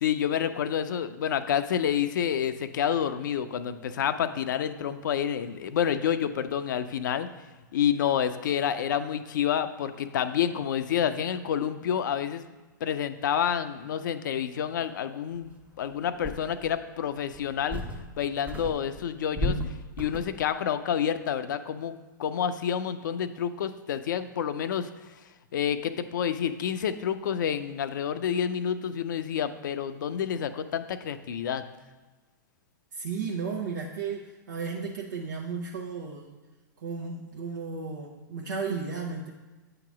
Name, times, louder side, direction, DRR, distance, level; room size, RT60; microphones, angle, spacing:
voice 1, 0.0-7.3 7.7-12.5 12.8-19.6 20.0-24.9 25.5-31.6, left 9 dB, 70° left, 11 dB, 0.5 m, -29 dB
sound 1, 15.6-15.7 16.2-16.8 17.3-18.2 18.5-20.5, equal, 10° right, 0.7 m, -34 dB
voice 2, 32.9-36.3 36.8-39.3, right 5 dB, 70° right, -2 dB, 0.9 m, -34 dB
8.3 x 2.9 x 6.0 m, 1.2 s
hypercardioid pair, 120°, 11 cm